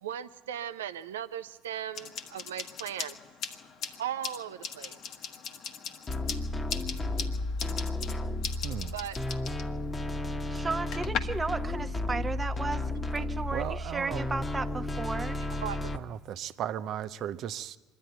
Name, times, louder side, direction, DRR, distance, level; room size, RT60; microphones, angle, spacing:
voice 1, 0.0-3.2 4.0-5.0 8.9-9.2 15.6-15.9, right 10 dB, 85° right, 12 dB, 0.7 m, -37 dB
sound 1, 1.9-11.2, left 7 dB, 60° left, 1.4 m, -40 dB
sound 2, 6.1-16.0, left 2 dB, 20° left, 1.3 m, -33 dB
voice 2, 8.6-8.9 13.5-14.3 15.9-17.8, right 10 dB, 60° right, 12 dB, 0.8 m, -36 dB
voice 3, 10.5-15.4, right 3 dB, 25° right, 9 dB, 1.0 m, -34 dB
25.0 x 11.0 x 9.4 m, 1.3 s
hypercardioid pair, 70°, 0 cm